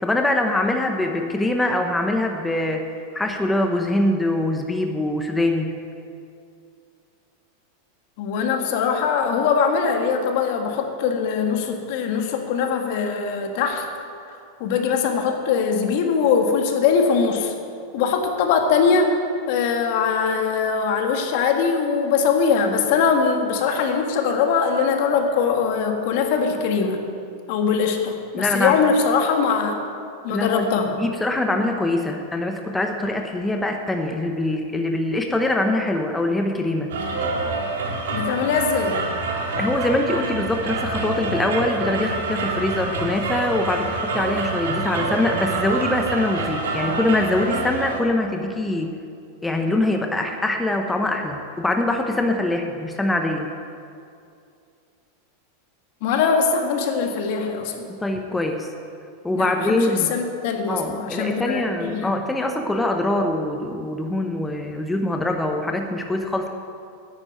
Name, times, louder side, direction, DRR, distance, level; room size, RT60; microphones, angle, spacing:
voice 1, 0.0-2.9 3.1-5.7 28.3-28.8 30.3-36.9 39.6-48.9 49.4-53.5 57.9-58.7 59.2-60.1 60.7-66.5, left 2 dB, 10° left, 4 dB, 0.9 m, -23 dB
voice 2, 8.2-13.9 14.3-17.5 17.9-19.2 19.5-27.0 27.5-29.8 30.2-30.9 38.1-39.0 56.0-57.9 59.3-62.1, left 6 dB, 60° left, 4 dB, 1.8 m, -21 dB
sound 1, 36.9-48.0, right 3 dB, 85° right, 2.1 m, -26 dB
9.8 x 9.8 x 9.0 m, 2.4 s
supercardioid pair, 130°, 0 cm